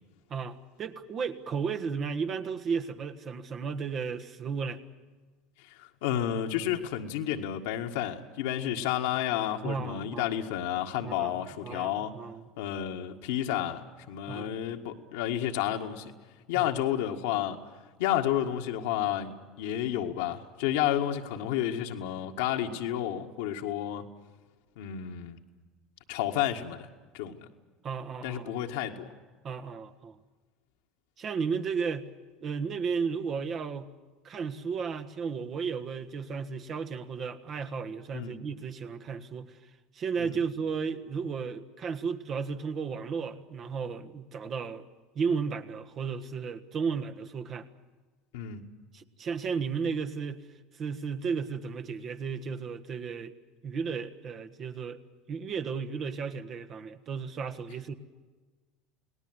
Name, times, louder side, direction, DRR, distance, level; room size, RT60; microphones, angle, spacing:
voice 1, 0.3-4.8 9.6-10.3 11.0-11.4 11.6-12.4 14.3-14.6 16.5-16.7 27.8-28.5 29.4-30.2 31.2-32.1 32.4-33.9 34.2-39.6 39.9-44.9 45.1-47.7 48.9-50.4 50.7-53.3 53.6-55.0 55.3-57.9, right 5 dB, 40° right, 7 dB, 1.5 m, -34 dB
voice 2, 5.8-12.2 12.6-16.1 16.5-17.6 18.0-24.1 24.8-25.4 26.1-26.9 27.1-27.5 28.2-29.1 38.1-38.4 40.2-40.4 48.3-48.6, left 11 dB, 70° left, 4 dB, 1.8 m, -31 dB
29.0 x 19.0 x 8.0 m, 1.4 s
hypercardioid pair, 70°, 0 cm